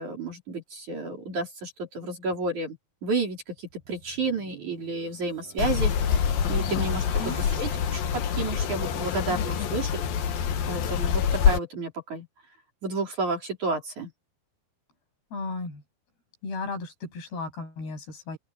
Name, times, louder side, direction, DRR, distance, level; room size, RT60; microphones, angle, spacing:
voice 1, 0.0-2.8 3.0-6.2 6.5-9.9 10.7-12.3 12.8-14.1, right 3 dB, 50° right, 5.3 m, -31 dB
sound 1, 3.6-9.7 10.2-10.5, right 4 dB, 80° right, 8.5 m, -48 dB
sound 2, 5.6-11.6, left 7 dB, 70° left, 3.3 m, -26 dB
voice 2, 6.9-7.4 15.3-15.8 16.4-18.4, left 3 dB, 90° left, 9.8 m, -35 dB
open air
omnidirectional pair, 4.5 m